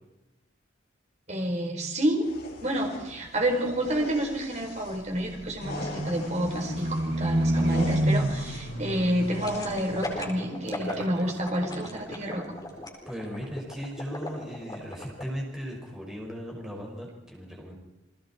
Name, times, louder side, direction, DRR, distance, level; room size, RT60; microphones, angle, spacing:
voice 1, 1.3-2.3 2.6-12.4, right 1 dB, 35° right, 2 dB, 4.7 m, -29 dB
sound 1, 2.2-10.1, left 2 dB, 55° left, 3.8 m, -42 dB
Livestock farm animals working animals, 5.6-10.4 10.7-11.4 11.8-12.0, right 1 dB, 60° right, 2.1 m, -29 dB
sound 2, 9.4-15.2 15.6-15.7, left 1 dB, 20° left, 4.3 m, -37 dB
voice 2, 13.1-17.7, equal, 5° right, -2 dB, 5.7 m, -37 dB
29.5 x 20.5 x 4.5 m, 1.0 s
head